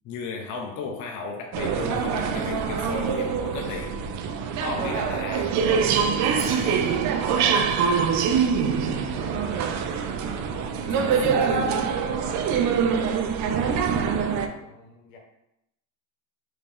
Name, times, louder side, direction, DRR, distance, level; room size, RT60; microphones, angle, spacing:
voice 1, 0.0-4.0 4.6-5.6 10.9-11.9, left 4 dB, 50° left, 1 dB, 0.6 m, -34 dB
ambiance metro, 1.5-14.5, right 6 dB, 45° right, 0.4 m, -24 dB
voice 2, 6.0-6.5 8.2-8.5 13.6-15.2, left 3 dB, 80° left, 1 dB, 1.0 m, -49 dB
Hi-hat, 6.4-10.3, equal, 15° left, 1.2 m, -45 dB
3.0 x 2.7 x 3.5 m, 0.83 s
supercardioid pair, 110°, 40 cm